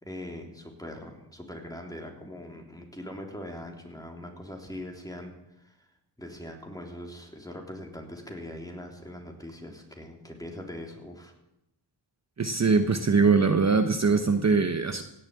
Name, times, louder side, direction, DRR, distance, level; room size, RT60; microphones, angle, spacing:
voice 1, 0.0-5.8 6.2-11.3, left 1 dB, 10° left, 1 dB, 3.4 m, -41 dB
voice 2, 12.4-15.0, right 4 dB, 40° right, 8 dB, 0.9 m, -22 dB
17.0 x 7.3 x 8.6 m, 0.85 s
cardioid pair, 70°, 43 cm